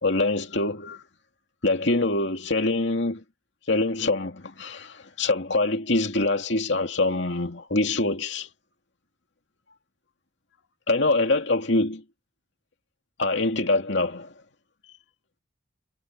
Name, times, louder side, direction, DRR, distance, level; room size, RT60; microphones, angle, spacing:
voice 1, 0.0-1.0 1.6-3.2 3.7-8.5 10.9-12.0 13.2-14.3, left 2 dB, 65° left, 2.6 m, -24 dB
head